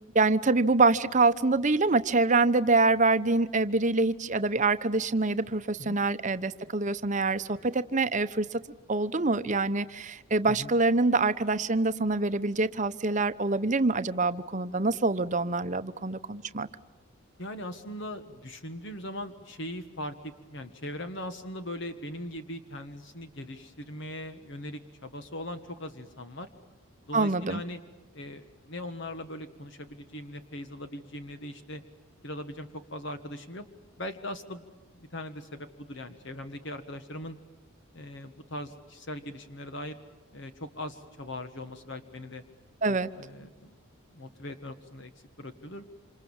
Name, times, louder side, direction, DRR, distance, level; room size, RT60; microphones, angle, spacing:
voice 1, 0.1-8.6 8.9-16.7 27.1-27.6 42.8-43.1, right 3 dB, 35° right, 12 dB, 0.9 m, -25 dB
voice 2, 17.4-26.5 27.1-27.8 28.1-31.8 32.2-33.7 34.0-34.7 34.9-37.4 37.9-40.0 40.3-42.4 42.9-43.7 44.1-45.1 45.4-45.8, left 1 dB, 55° left, 8 dB, 1.5 m, -40 dB
27.5 x 27.5 x 7.3 m, 1.2 s
head